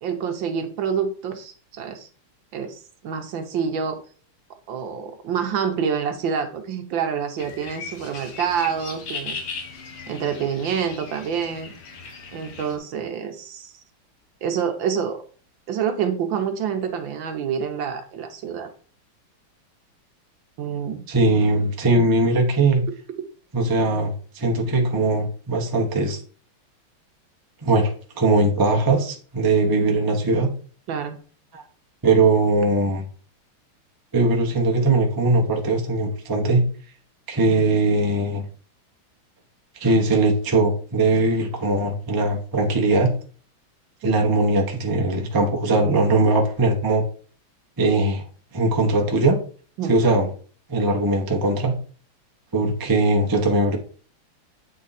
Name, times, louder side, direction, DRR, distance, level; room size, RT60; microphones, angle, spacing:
voice 1, 0.0-2.1 2.5-4.0 4.7-9.4 10.1-11.7 12.3-13.7 14.4-15.2 15.7-18.7 20.6-21.1 21.9-22.0 30.9-31.2 44.0-44.1 49.8-49.9, right 7 dB, 65° right, 6 dB, 1.5 m, -27 dB
sound 1, 7.4-12.8, left 4 dB, 85° left, 2.1 m, -37 dB
voice 2, 21.1-22.8 23.5-26.2 27.6-30.5 31.5-31.6 32.0-33.0 34.1-36.6 37.3-38.4 39.7-43.1 44.0-47.0 47.8-48.2 48.5-49.4 49.9-50.3 50.7-51.8 52.5-53.8, right 2 dB, 20° right, 1 dB, 0.6 m, -20 dB
8.4 x 3.8 x 4.1 m, 0.42 s
omnidirectional pair, 2.4 m